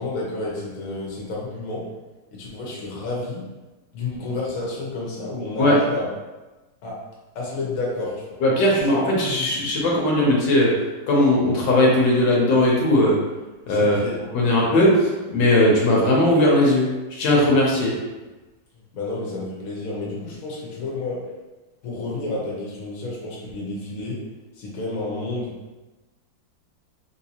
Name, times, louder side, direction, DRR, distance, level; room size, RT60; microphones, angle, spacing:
voice 1, 0.0-1.8 2.3-3.4 3.9-6.1 6.8-7.0 7.3-8.4 13.7-14.5 18.7-21.2 21.8-24.2 24.6-25.5, left 2 dB, 55° left, -4 dB, 1.2 m, -30 dB
voice 2, 8.4-10.7 11.1-13.2 13.7-14.0 14.3-17.9, left 1 dB, 85° left, -3 dB, 1.5 m, -18 dB
3.6 x 2.7 x 2.8 m, 1.1 s
omnidirectional pair, 2.0 m